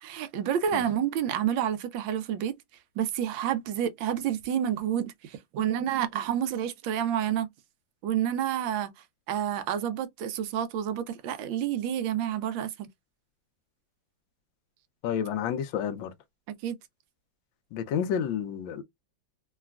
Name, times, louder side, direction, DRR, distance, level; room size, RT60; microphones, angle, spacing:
voice 1, 0.0-2.5 3.0-7.5 8.0-12.9 16.6-16.8, right 10 dB, 85° right, 1.4 m, -29 dB
voice 2, 15.0-16.1 17.7-18.8, left 8 dB, 90° left, 1.4 m, -30 dB
3.9 x 2.2 x 2.2 m
omnidirectional pair, 2.0 m